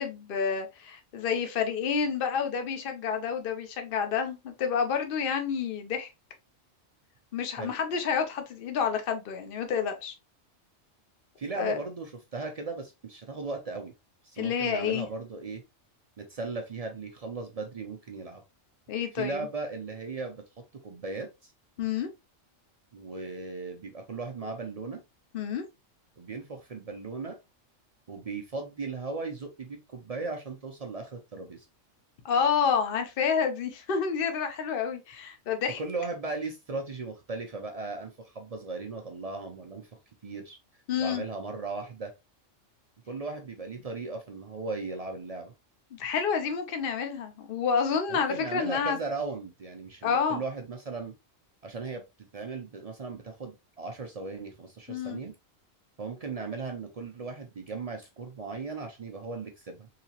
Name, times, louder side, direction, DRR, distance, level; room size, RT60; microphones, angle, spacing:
voice 1, 0.0-6.1 7.3-10.1 11.5-11.8 14.4-15.1 18.9-19.5 21.8-22.1 25.3-25.6 32.2-35.8 40.9-41.2 46.0-49.0 50.0-50.4 54.9-55.2, left 6 dB, 50° left, 0.8 m, -29 dB
voice 2, 11.4-13.9 14.2-15.6 16.2-18.4 19.1-20.4 20.8-21.5 22.9-25.0 26.2-27.4 28.1-31.7 35.8-39.9 40.2-40.6 41.0-42.1 43.1-45.5 48.1-51.1 51.6-55.3 56.0-59.9, right 3 dB, 50° right, 0.4 m, -37 dB
3.8 x 2.9 x 2.7 m
omnidirectional pair, 1.3 m